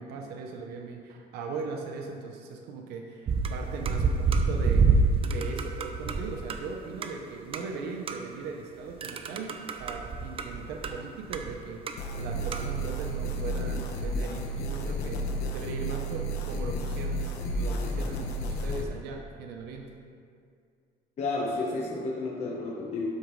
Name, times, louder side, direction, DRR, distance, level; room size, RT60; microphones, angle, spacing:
voice 1, 0.0-19.9, right 4 dB, 85° right, 2 dB, 0.7 m, -39 dB
sound 1, 3.3-6.6 7.0-7.1 7.5-7.7 8.1-8.3 9.0-11.0 11.3-12.0 12.2-13.6, right 4 dB, 35° right, 0.5 m, -28 dB
sound 2, 12.0-18.8, equal, 85° left, 0.9 m, -32 dB
voice 2, 21.2-23.1, left 3 dB, 45° left, -4 dB, 1.0 m, -31 dB
12.5 x 5.1 x 3.2 m, 2.3 s
cardioid pair, 120°, 16 cm